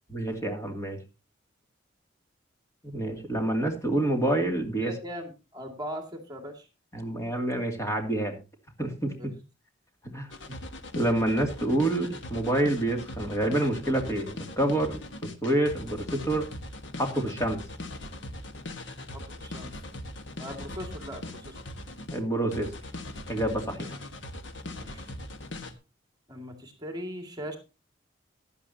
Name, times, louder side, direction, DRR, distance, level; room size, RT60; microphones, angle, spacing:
voice 1, 0.1-1.0 2.8-4.9 6.9-8.4 8.8-9.3 10.1-10.3 10.9-15.0 15.4-16.5 17.0-17.6 22.1-22.7 23.3-24.0, right 1 dB, 15° left, 3 dB, 2.5 m, -27 dB
voice 2, 4.8-6.7 9.2-9.3 19.1-19.7 20.4-21.6 24.7-25.1 26.3-27.6, equal, 20° right, 4 dB, 2.1 m, -39 dB
sound 1, 10.3-22.2 22.5-25.7, left 1 dB, 75° left, 1.5 m, -40 dB
15.5 x 11.0 x 2.8 m, 0.29 s
head